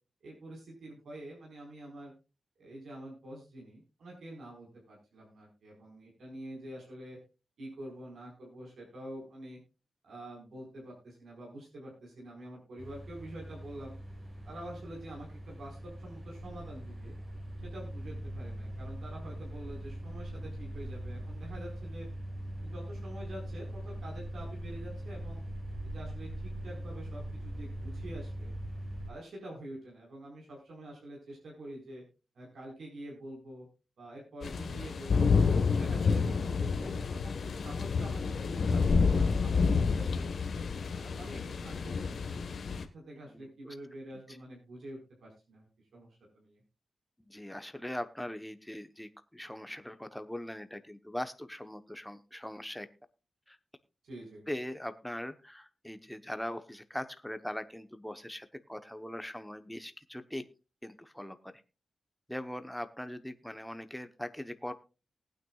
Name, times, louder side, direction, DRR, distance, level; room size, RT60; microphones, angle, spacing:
voice 1, 0.2-2.1 2.6-7.2 7.6-9.6 10.0-13.9 14.4-17.1 17.6-22.1 22.6-25.4 25.8-28.5 29.1-32.0 32.3-33.7 34.0-35.4 35.8-40.3 40.8-45.7 45.9-46.6 54.0-54.4, right 1 dB, 80° right, -2 dB, 4.6 m, -47 dB
sound 1, 12.8-29.1, right 1 dB, 35° right, 4.7 m, -41 dB
sound 2, 34.4-42.8, left 5 dB, 65° left, 1.3 m, -29 dB
voice 2, 43.3-43.7 44.3-44.4 47.2-52.9 53.5-53.6 54.5-60.4 60.8-61.5 62.3-64.7, left 1 dB, 5° left, 9 dB, 0.9 m, -41 dB
19.5 x 9.2 x 2.3 m, 0.31 s
wide cardioid pair, 120°, 0 cm